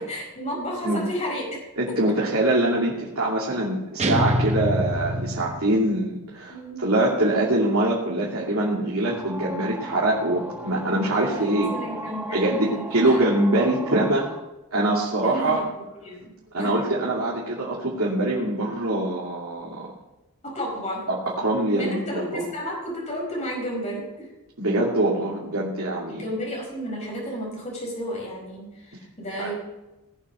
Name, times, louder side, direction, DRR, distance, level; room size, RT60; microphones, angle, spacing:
voice 1, 0.1-1.6 6.5-6.8 10.9-13.2 15.2-15.6 16.0-16.3 16.6-16.7 20.4-21.1 21.7-24.3 26.1-29.5, equal, 30° left, -2 dB, 4.8 m, -32 dB
voice 2, 1.8-6.5 6.8-11.7 12.3-14.3 14.7-15.6 16.5-19.8 21.1-22.4 24.6-26.2 29.4-29.5, right 1 dB, 70° right, -5 dB, 2.7 m, -24 dB
sound 1, 4.0-6.0, equal, 30° right, 1.0 m, -25 dB
sound 2, 9.0-14.4, right 1 dB, 10° right, 1.2 m, -37 dB
18.5 x 7.3 x 6.4 m, 1.0 s
head